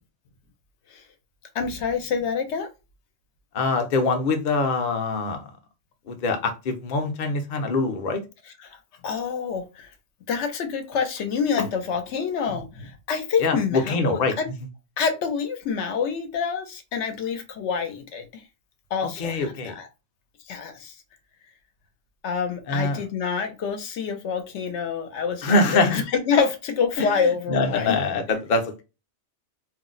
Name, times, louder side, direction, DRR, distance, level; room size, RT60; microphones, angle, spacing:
voice 1, 1.5-2.7 8.6-9.9 10.3-14.5 15.0-18.4 18.9-19.9 20.5-20.9 22.2-28.0, left 6 dB, 80° left, 0.9 m, -27 dB
voice 2, 3.5-5.5 6.1-8.2 13.4-14.3 19.0-19.8 22.7-23.0 25.4-26.0 27.0-27.1 27.5-28.8, left 3 dB, 50° left, 0.6 m, -24 dB
2.5 x 2.0 x 3.8 m
omnidirectional pair, 1.2 m